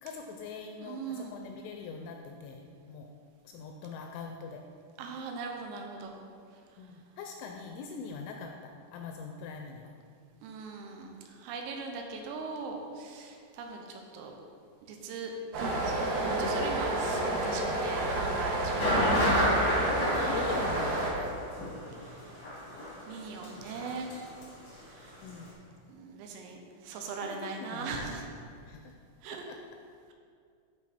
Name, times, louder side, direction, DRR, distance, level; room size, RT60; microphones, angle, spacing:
voice 1, 0.0-3.1 3.4-4.6 6.8-9.9 20.1-21.4 25.2-25.5 27.2-28.1 28.7-28.9 29.3-29.6, left 5 dB, 85° left, 3 dB, 2.8 m, -42 dB
voice 2, 0.8-1.4 5.0-6.1 10.4-14.3 14.9-15.3 15.6-19.2 19.6-19.7 20.0-20.5 23.1-24.1 24.9-25.1 25.9-28.2 29.2-29.4, right 4 dB, 85° right, 2 dB, 3.3 m, -40 dB
sound 1, 15.5-21.1, right 1 dB, 65° right, 2.5 m, -30 dB
sound 2, 18.8-24.4 24.7-24.8 25.2-25.3, equal, 70° left, 1.1 m, -30 dB
10.5 x 4.3 x 4.3 m, 2.3 s
omnidirectional pair, 5.9 m